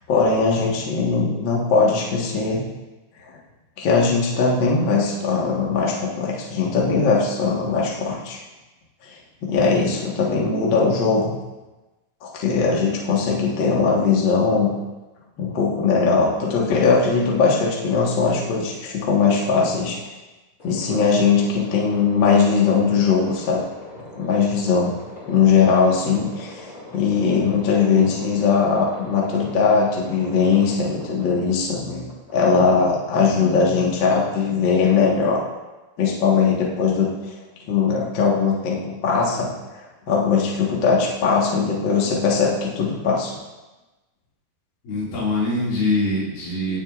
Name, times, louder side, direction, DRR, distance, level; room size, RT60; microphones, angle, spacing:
voice 1, 0.1-2.6 3.8-8.4 9.0-9.1 9.4-11.3 12.2-14.7 15.4-20.0 20.6-23.6 24.2-24.9 25.3-26.6 26.9-35.4 36.0-37.1 37.7-43.4, left 5 dB, 50° left, -3 dB, 1.4 m, -20 dB
sound 1, 20.6-33.2, left 1 dB, 35° left, 3.8 m, -41 dB
voice 2, 44.8-46.8, left 2 dB, 80° left, -6 dB, 4.1 m, -23 dB
17.5 x 6.4 x 2.4 m, 1.1 s
omnidirectional pair, 4.0 m